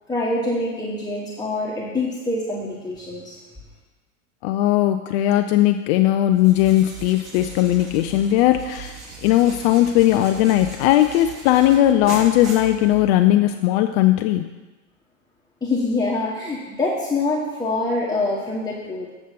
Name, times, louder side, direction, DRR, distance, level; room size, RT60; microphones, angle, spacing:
voice 1, 0.1-3.4 15.6-19.1, left 2 dB, 10° left, -5 dB, 1.2 m, -25 dB
voice 2, 4.4-14.4, left 13 dB, 50° left, 7 dB, 0.5 m, -18 dB
sound 1, 6.3-13.3, right 4 dB, 40° right, 3.1 m, -38 dB
8.0 x 6.3 x 5.2 m, 1.2 s
hypercardioid pair, 95°, 39 cm